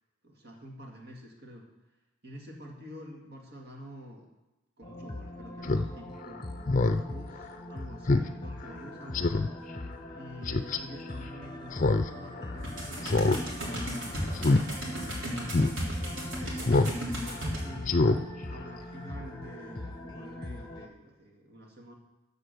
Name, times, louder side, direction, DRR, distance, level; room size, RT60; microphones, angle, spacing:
voice 1, 0.2-1.7 2.2-4.3 4.8-9.5 10.1-16.8 17.6-21.9, equal, 55° right, 0 dB, 2.1 m, -48 dB
sound 1, 4.8-20.9, left 1 dB, 25° left, 1.0 m, -42 dB
Speech synthesizer, 5.6-5.9 6.2-6.3 6.7-7.0 7.4-7.5 8.1-8.3 8.6-8.7 9.1-9.5 10.5-10.8 11.7-12.1 12.4-12.5 13.0-13.4 13.7-13.9 14.4-14.6 15.0-15.1 15.5-15.7 16.7-16.9 17.3-17.4 17.8-18.2 18.5-18.6, left 3 dB, 40° left, 0.5 m, -24 dB
sound 2, 12.6-17.6, equal, 80° right, 3.4 m, -35 dB
14.0 x 5.1 x 6.8 m, 1.0 s
head